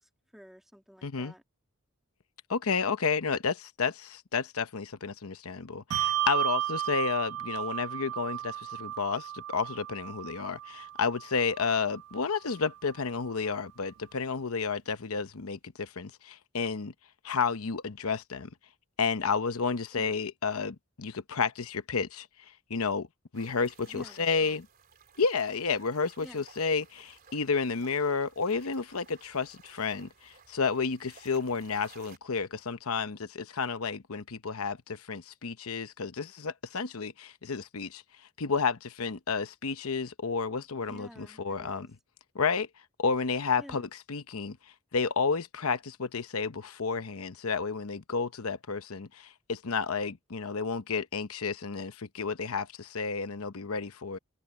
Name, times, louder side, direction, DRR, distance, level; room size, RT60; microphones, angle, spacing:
voice 1, 0.0-1.4 19.9-20.2 23.9-24.6 26.2-26.4 40.8-41.9 43.6-43.9, equal, ahead, 1.7 m, -51 dB
voice 2, 1.0-1.3 2.5-16.9 17.2-18.5 19.0-22.3 22.7-23.1 23.3-24.6 25.2-38.0 38.4-41.9 42.3-42.7 43.0-44.6 44.9-54.2, left 5 dB, 80° left, 0.9 m, -31 dB
Bell, 5.9-12.8, right 12 dB, 80° right, 0.4 m, -34 dB
sound 1, 23.3-32.2, right 6 dB, 45° right, 3.7 m, -57 dB
head